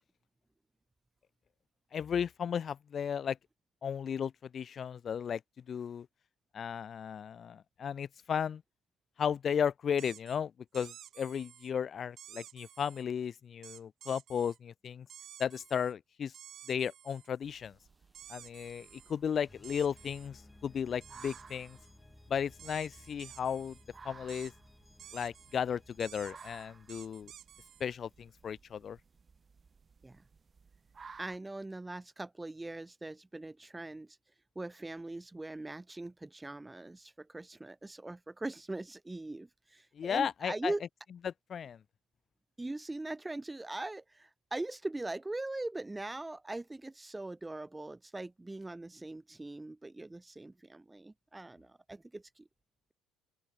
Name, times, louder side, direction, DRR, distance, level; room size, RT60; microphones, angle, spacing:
voice 1, 1.9-3.4 3.8-5.4 5.7-6.1 6.5-8.6 9.2-15.1 15.4-16.3 16.7-17.7 18.3-21.8 22.3-23.8 24.0-24.5 25.1-27.3 27.8-29.0 39.9-40.7 41.2-41.8, left 7 dB, 45° left, 0.6 m, -35 dB
sound 1, 10.0-10.4 10.7-11.7 12.2-13.0 13.6-14.6 15.1-15.9 16.3-17.3 18.1-19.1 19.6-20.3 21.0-21.9 22.6-23.8 24.3-24.5 25.0-25.6 26.0-27.8, right 11 dB, 55° right, 4.0 m, -52 dB
sound 2, 17.3-28.1, left 2 dB, 10° left, 2.6 m, -61 dB
sound 3, 17.4-31.4, right 5 dB, 30° right, 4.9 m, -58 dB
voice 2, 31.2-34.2 34.6-40.8 42.6-52.5, right 2 dB, 15° right, 0.5 m, -41 dB
open air
hypercardioid pair, 70°, 0 cm